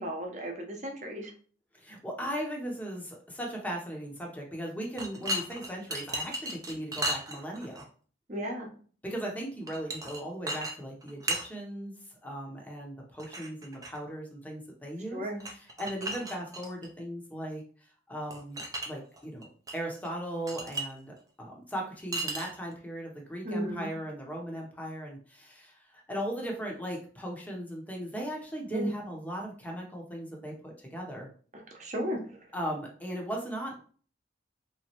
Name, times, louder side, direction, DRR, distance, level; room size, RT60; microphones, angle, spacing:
voice 1, 0.0-1.3 8.3-8.7 15.1-15.4 23.4-23.9 28.7-28.9 31.5-32.2, equal, 40° right, 1 dB, 0.8 m, -34 dB
voice 2, 1.8-7.8 9.0-11.9 12.2-17.6 18.1-19.5 19.7-31.3 32.5-33.8, equal, 10° left, 0 dB, 0.7 m, -38 dB
sound 1, 4.9-7.8 9.7-10.2 10.5-10.7 11.0-11.5 13.2-14.0 15.4-16.9 18.3-18.9 19.1-19.8 20.0-20.1 20.5-20.9 22.1-22.7, right 1 dB, 20° right, 0.5 m, -35 dB
3.5 x 3.0 x 2.9 m, 0.43 s
head